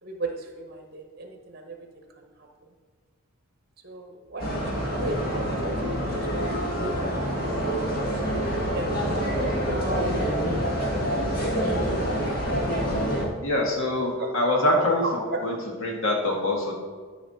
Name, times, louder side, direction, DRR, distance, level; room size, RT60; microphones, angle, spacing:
voice 1, 0.0-2.3 2.6-2.7 3.8-7.9 8.5-9.9 11.3-12.2 15.0-15.4, right 2 dB, 45° right, 3 dB, 1.1 m, -37 dB
sound 1, 4.4-13.2, equal, 45° left, 1.9 m, -26 dB
voice 2, 13.4-15.0 15.4-16.7, left 1 dB, 65° left, -1 dB, 1.9 m, -24 dB
13.0 x 4.9 x 4.2 m, 1.5 s
head